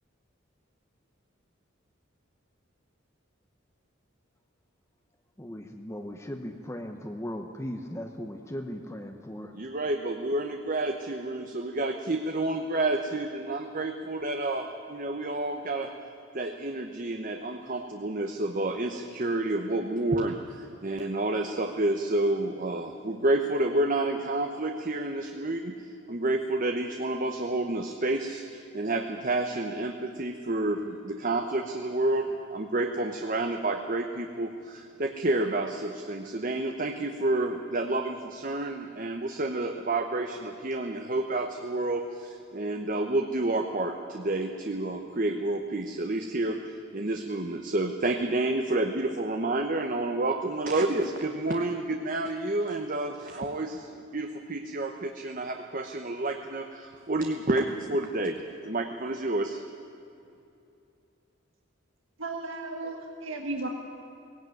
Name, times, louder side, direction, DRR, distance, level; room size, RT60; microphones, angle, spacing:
voice 1, 5.4-9.5, equal, 15° left, 4 dB, 0.9 m, -38 dB
voice 2, 9.5-15.9 16.3-25.7 26.1-58.4 58.6-59.6, right 2 dB, 40° right, 4 dB, 1.0 m, -29 dB
voice 3, 62.2-63.7, right 2 dB, 80° right, 2 dB, 1.6 m, -34 dB
18.5 x 17.0 x 9.3 m, 2.7 s
head